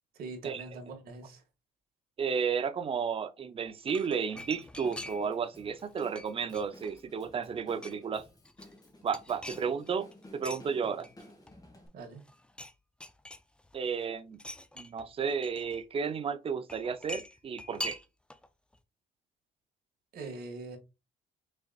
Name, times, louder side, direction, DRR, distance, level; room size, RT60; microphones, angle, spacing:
voice 1, 0.1-1.4 11.9-12.3 20.1-20.8, right 3 dB, 65° right, 2.0 m, -43 dB
voice 2, 2.2-8.2 9.0-10.1 10.3-11.1 13.7-14.4 14.8-18.0, right 6 dB, 35° right, 0.6 m, -33 dB
sound 1, 3.7-5.4 5.7-7.1 7.5-8.1 8.4-10.6 11.0-11.9 12.2-12.7 13.0-13.9 14.3-15.8 16.7-18.5 18.7-18.8, left 1 dB, 5° left, 0.5 m, -44 dB
Drum kit / Drum, 4.4-11.9, left 1 dB, 20° left, 1.9 m, -55 dB
5.6 x 3.9 x 2.4 m
cardioid pair, 110°, 17 cm